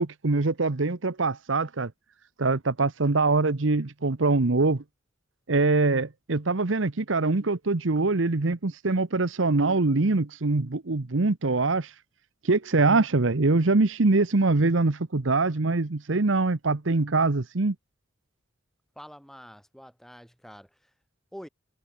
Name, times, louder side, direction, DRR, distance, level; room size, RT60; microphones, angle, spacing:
voice 1, 0.0-1.9 2.4-4.8 5.5-11.9 12.4-17.7, right 3 dB, 70° right, 1.0 m, -23 dB
voice 2, 19.0-20.7 21.3-21.5, equal, ahead, 7.1 m, -46 dB
head